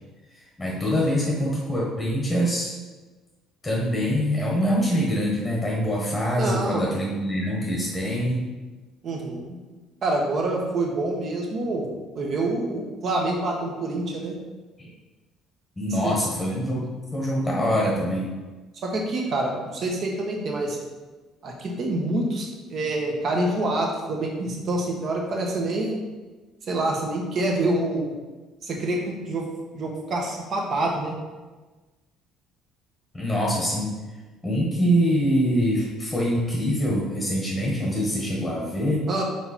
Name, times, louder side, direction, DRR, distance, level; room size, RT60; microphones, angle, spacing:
voice 1, 0.6-2.7 3.6-8.4 14.8-14.9 15.8-18.3 33.1-33.9 34.4-39.1, equal, 10° left, -3 dB, 1.2 m, -24 dB
voice 2, 6.4-6.8 9.0-9.5 10.0-11.9 12.1-14.4 16.0-16.1 18.8-20.8 21.4-26.0 26.7-28.2 28.6-29.4 29.7-31.2 39.1-39.2, right 2 dB, 45° right, 0 dB, 1.2 m, -26 dB
5.2 x 4.4 x 4.3 m, 1.3 s
cardioid pair, 125°, 0 cm